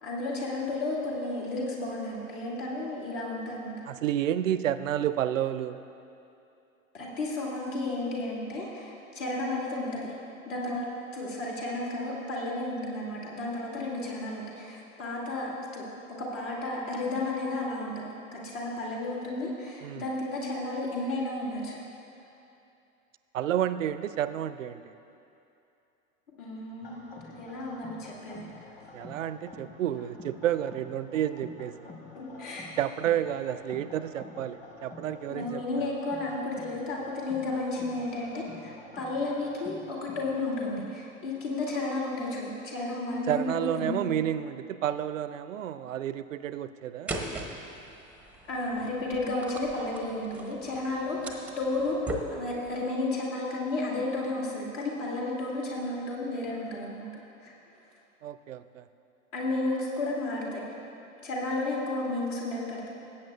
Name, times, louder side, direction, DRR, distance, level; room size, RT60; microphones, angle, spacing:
voice 1, 0.0-3.7 6.9-10.2 10.5-10.8 11.1-15.9 16.2-21.8 26.4-27.0 27.4-28.5 32.1-32.8 35.3-44.0 48.5-52.0 52.3-57.1 57.4-57.5 59.3-60.6 61.2-62.9, left 2 dB, 60° left, -4 dB, 2.4 m, -32 dB
voice 2, 3.9-5.8 19.8-20.0 23.3-24.8 28.9-31.9 32.8-35.9 43.3-47.1 58.2-58.9, right 11 dB, 65° right, 13 dB, 0.5 m, -30 dB
sound 1, 26.8-40.8, left 2 dB, 15° left, 1.1 m, -48 dB
sound 2, 47.1-52.8, right 2 dB, 5° right, 0.6 m, -40 dB
18.0 x 8.7 x 2.3 m, 2.7 s
figure-of-eight pair, 90°, 41 cm